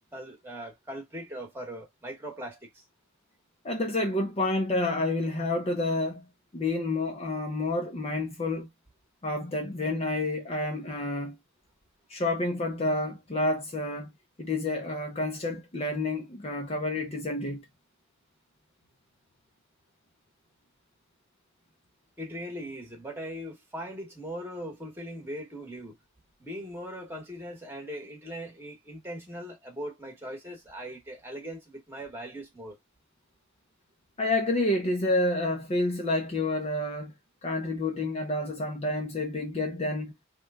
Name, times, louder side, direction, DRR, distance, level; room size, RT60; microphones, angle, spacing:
voice 1, 0.0-2.8 22.2-26.0 26.4-32.8, equal, 10° right, 1.1 m, -40 dB
voice 2, 3.6-6.2 6.5-8.7 9.2-11.4 12.1-14.1 14.4-17.6 34.2-37.1 37.4-40.1, left 2 dB, 30° left, 0.5 m, -29 dB
3.1 x 2.3 x 3.4 m
head